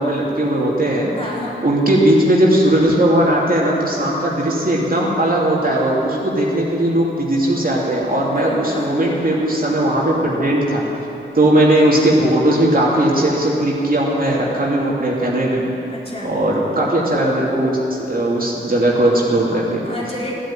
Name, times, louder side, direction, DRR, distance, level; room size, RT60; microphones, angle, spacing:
voice 1, 0.0-1.1 1.6-10.8 11.3-15.6 16.2-19.8, right 1 dB, 45° right, -4 dB, 3.0 m, -17 dB
voice 2, 1.2-1.6 8.3-8.9 15.9-16.4 19.8-20.3, left 1 dB, 30° left, -5 dB, 3.8 m, -30 dB
14.5 x 8.9 x 9.0 m, 2.9 s
wide cardioid pair, 55°, 20 cm